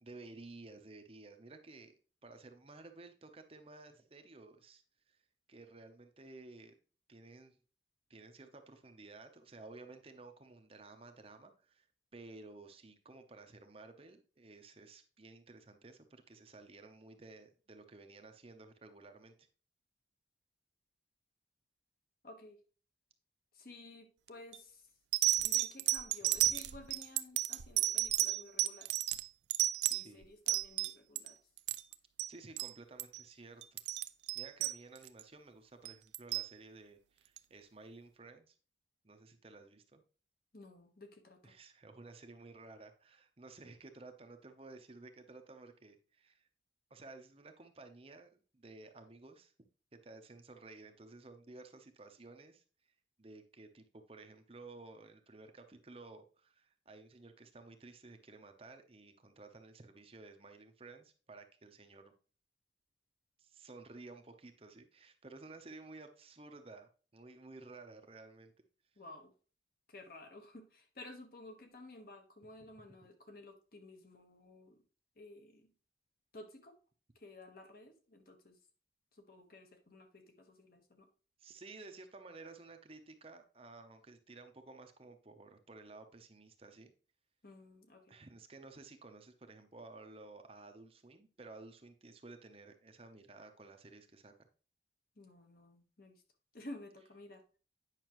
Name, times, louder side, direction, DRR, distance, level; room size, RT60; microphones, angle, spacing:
voice 1, 0.0-1.9 2.2-5.2 5.5-6.7 7.1-7.6 8.1-11.9 12.1-19.5 30.0-30.3 32.3-33.8 34.3-38.6 39.0-40.0 41.4-46.5 46.9-49.5 49.9-52.6 53.2-62.1 63.4-68.5 81.4-86.9 88.1-94.3, right 3 dB, 30° right, 6 dB, 0.7 m, -54 dB
voice 2, 22.2-22.6 23.5-24.8 25.4-29.0 29.9-31.4 40.5-41.5 69.0-69.3 69.9-74.8 75.2-75.7 76.3-76.8 77.1-78.6 79.1-81.1 87.4-88.2 95.2-96.2 96.5-97.4, left 2 dB, 50° left, 5 dB, 1.2 m, -54 dB
sound 1, 24.3-24.6 25.1-31.3 31.6-32.3 32.6-32.7 33.0-33.2 33.6-35.2 35.9-36.5 37.4-37.5, right 15 dB, 70° right, 0.4 m, -33 dB
9.1 x 5.7 x 3.0 m, 0.37 s
head